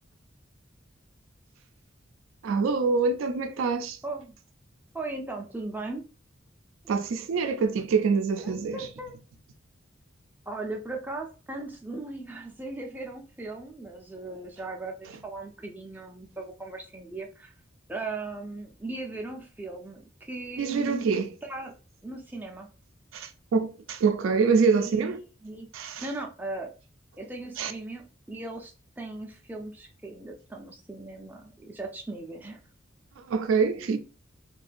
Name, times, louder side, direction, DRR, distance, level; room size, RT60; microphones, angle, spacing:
voice 1, 2.4-4.0 6.9-8.9 20.6-21.3 23.1-25.2 25.7-26.1 27.6-27.7 33.3-34.0, right 5 dB, 80° right, 0.4 m, -25 dB
voice 2, 4.0-4.4 4.9-6.0 8.4-9.1 10.5-17.5 17.9-21.1 21.4-21.7 22.0-22.7 24.8-26.7 27.2-32.6, right 2 dB, 10° right, 0.4 m, -38 dB
2.4 x 2.2 x 2.5 m
head